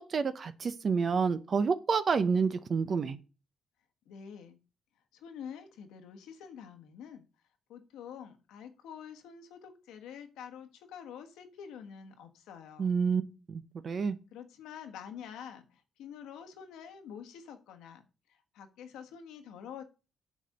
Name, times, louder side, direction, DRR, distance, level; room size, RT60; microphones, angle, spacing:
voice 1, 0.0-3.2 12.8-13.2 13.5-14.2, right 5 dB, 45° right, 0.7 m, -29 dB
voice 2, 4.1-4.6 5.1-7.2 7.7-12.9 14.3-18.0 18.3-19.8, left 8 dB, 90° left, 1.3 m, -47 dB
8.2 x 4.3 x 6.4 m
cardioid pair, 90°, 0 cm